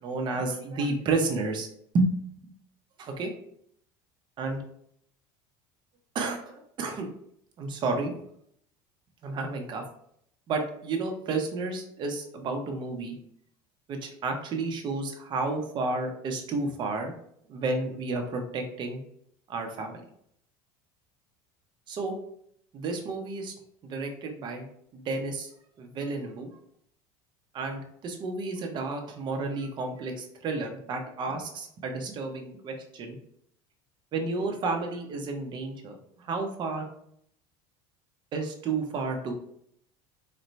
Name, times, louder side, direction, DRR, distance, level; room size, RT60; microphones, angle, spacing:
voice 1, 0.0-1.7 1.9-2.1 2.4-2.5 3.0-3.3 4.4-4.6 6.1-7.1 7.6-8.1 9.2-9.8 10.5-13.2 13.9-17.1 17.5-19.0 19.5-20.0 21.9-22.1 22.7-23.5 23.8-24.7 24.9-25.5 25.8-26.5 27.5-33.2 34.1-36.9 38.3-39.3, right 3 dB, 40° right, 3 dB, 0.9 m, -31 dB
4.2 x 2.7 x 3.2 m, 0.68 s
cardioid pair, 140°, 12 cm